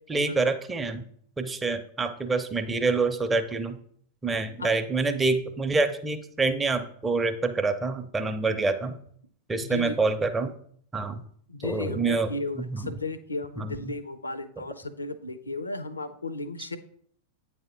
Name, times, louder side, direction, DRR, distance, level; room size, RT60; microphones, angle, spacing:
voice 1, 0.1-1.0 1.4-3.8 4.2-9.0 9.5-10.5 10.9-11.2 11.6-12.3 12.5-12.9 13.6-13.9, right 3 dB, 15° right, 6 dB, 0.5 m, -27 dB
voice 2, 9.6-10.1 11.5-16.8, left 3 dB, 80° left, 13 dB, 0.5 m, -35 dB
8.8 x 3.4 x 4.0 m, 0.63 s
figure-of-eight pair, 90°, 0 cm